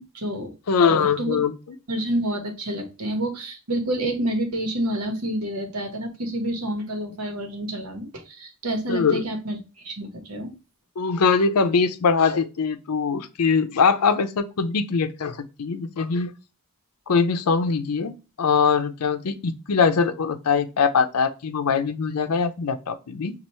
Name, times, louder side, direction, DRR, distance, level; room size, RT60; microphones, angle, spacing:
voice 1, 0.0-0.5 0.9-1.4 1.9-9.6 9.8-10.5, right 1 dB, 85° right, 1.1 m, -28 dB
voice 2, 0.7-1.8 8.9-9.2 11.0-16.3 17.1-18.1 18.4-23.3, left 5 dB, 90° left, 0.6 m, -22 dB
5.5 x 2.4 x 3.0 m
head